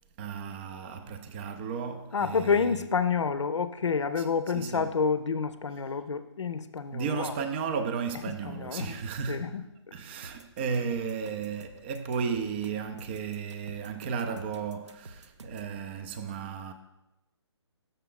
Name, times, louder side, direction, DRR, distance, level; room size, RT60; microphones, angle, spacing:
voice 1, 0.2-2.7 4.2-4.3 4.5-4.9 6.9-9.6 9.9-16.7, right 6 dB, 25° right, 0.4 m, -34 dB
voice 2, 2.1-7.3 8.4-9.0 9.3-9.6, left 5 dB, 80° left, 0.5 m, -28 dB
sound 1, 10.2-15.7, right 2 dB, 80° right, 0.7 m, -49 dB
6.8 x 5.8 x 3.7 m
figure-of-eight pair, 145°, 15 cm